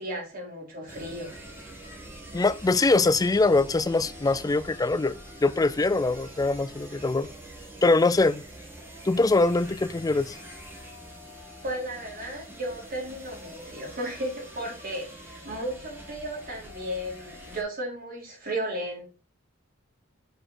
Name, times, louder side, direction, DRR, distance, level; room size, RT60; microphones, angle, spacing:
voice 1, 0.0-1.3 11.6-19.1, right 1 dB, 45° right, 3.4 m, -34 dB
sound 1, 0.9-17.6, right 1 dB, 10° right, 1.8 m, -45 dB
voice 2, 2.3-7.3 7.8-8.4 9.0-10.4, left 3 dB, 20° left, 0.4 m, -23 dB
6.6 x 4.4 x 4.3 m
head